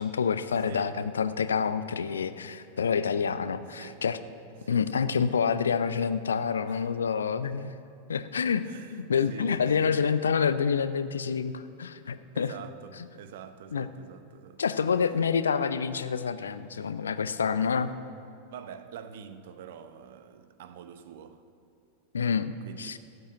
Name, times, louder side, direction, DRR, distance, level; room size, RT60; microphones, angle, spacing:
voice 1, 0.0-4.2 4.7-7.7 8.1-8.6 8.9-12.5 13.7-13.9 14.6-17.9 22.1-22.5 22.8-23.0, left 6 dB, 70° left, 0.6 m, -27 dB
voice 2, 0.6-1.0 3.7-4.0 4.6-5.1 6.7-7.0 8.6-9.0 9.3-10.0 12.3-14.6 15.6-15.7 17.2-17.3 18.5-21.4 22.7-23.0, right 8 dB, 55° right, 0.8 m, -46 dB
13.5 x 8.0 x 9.0 m
figure-of-eight pair, 90°, 0 cm